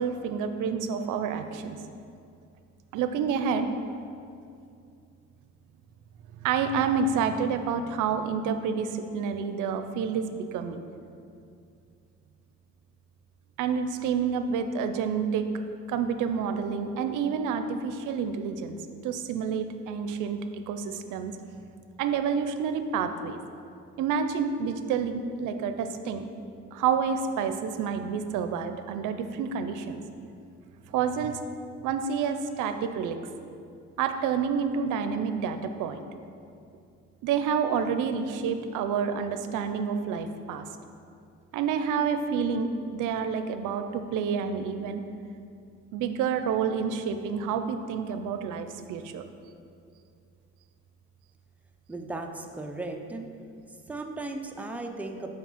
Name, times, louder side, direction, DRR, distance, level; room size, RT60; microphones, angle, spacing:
voice 1, 0.0-1.8 2.9-3.7 6.4-10.8 13.6-15.5 15.9-18.8 19.0-20.4 20.7-21.4 22.0-23.4 24.0-26.3 26.7-30.0 30.9-31.4 31.8-33.2 34.0-36.1 37.2-40.7 41.5-45.0 45.9-49.2, right 6 dB, 85° right, 8 dB, 0.5 m, -29 dB
voice 2, 51.9-53.3 53.9-55.3, right 2 dB, 5° right, 3 dB, 0.5 m, -36 dB
5.9 x 4.9 x 5.7 m, 2.5 s
cardioid pair, 90°, 30 cm